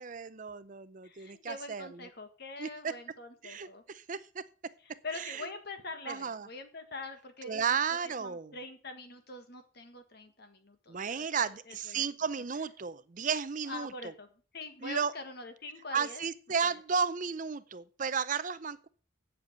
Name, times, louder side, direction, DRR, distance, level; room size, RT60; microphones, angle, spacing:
voice 1, 0.0-1.9 2.6-2.9 3.4-4.4 5.2-5.4 6.1-6.5 7.4-8.5 10.9-14.1 14.8-15.1 15.9-18.9, right 6 dB, 40° right, 14 dB, 0.5 m, -33 dB
voice 2, 1.0-3.8 4.8-12.0 13.6-14.3 14.5-16.2, left 3 dB, 50° left, 7 dB, 1.8 m, -44 dB
8.3 x 7.7 x 8.2 m, 0.39 s
head